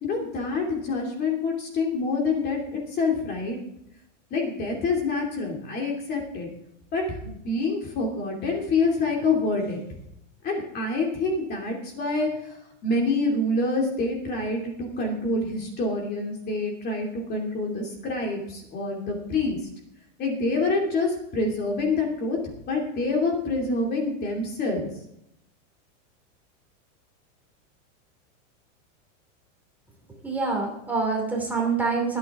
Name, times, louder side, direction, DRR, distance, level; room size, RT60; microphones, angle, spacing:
voice 1, 0.0-3.6 4.3-6.5 6.9-9.8 10.4-12.3 12.8-19.6 20.2-22.4 22.7-24.9, left 3 dB, 25° left, 0 dB, 2.7 m, -26 dB
voice 2, 30.2-32.2, right 4 dB, 5° right, -1 dB, 2.8 m, -26 dB
23.0 x 8.4 x 3.6 m, 0.78 s
supercardioid pair, 165°, 38 cm